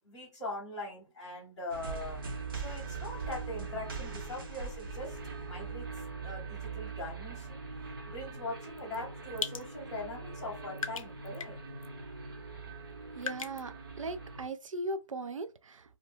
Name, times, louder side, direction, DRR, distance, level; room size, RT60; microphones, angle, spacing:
voice 1, 0.0-2.2 2.6-5.2 5.5-7.6 8.1-11.6, left 2 dB, 5° left, 0.7 m, -41 dB
sound 1, 1.7-14.5, right 4 dB, 45° right, 0.8 m, -41 dB
sound 2, 8.8-9.0 9.4-9.6 10.4-10.5 10.8-11.5 11.8-11.9 13.2-13.6, left 6 dB, 85° left, 0.5 m, -37 dB
voice 2, 13.2-15.8, right 2 dB, 75° right, 0.5 m, -38 dB
2.5 x 2.0 x 3.3 m
hypercardioid pair, 160°, 17 cm